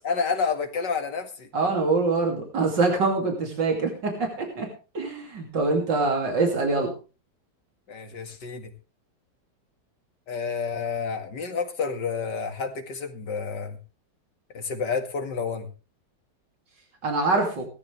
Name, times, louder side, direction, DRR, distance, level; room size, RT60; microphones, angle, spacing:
voice 1, 0.0-1.5 7.9-8.7 10.3-13.8 14.5-15.7, left 5 dB, 75° left, 6 dB, 2.6 m, -29 dB
voice 2, 1.5-4.7 5.0-6.9 17.0-17.7, right 3 dB, 85° right, 2 dB, 3.4 m, -24 dB
18.5 x 13.0 x 3.4 m, 0.33 s
omnidirectional pair, 1.9 m